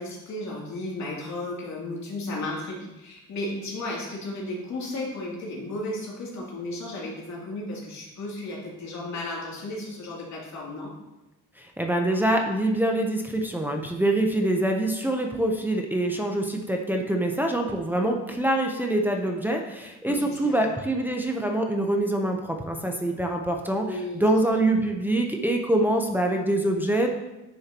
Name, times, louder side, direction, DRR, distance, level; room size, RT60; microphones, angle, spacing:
voice 1, 0.0-10.9 20.1-20.6 23.8-24.2, left 2 dB, 65° left, -4 dB, 3.0 m, -34 dB
voice 2, 11.6-27.1, right 1 dB, 5° right, 1 dB, 0.9 m, -25 dB
10.0 x 6.4 x 3.0 m, 1.0 s
cardioid pair, 90°, 30 cm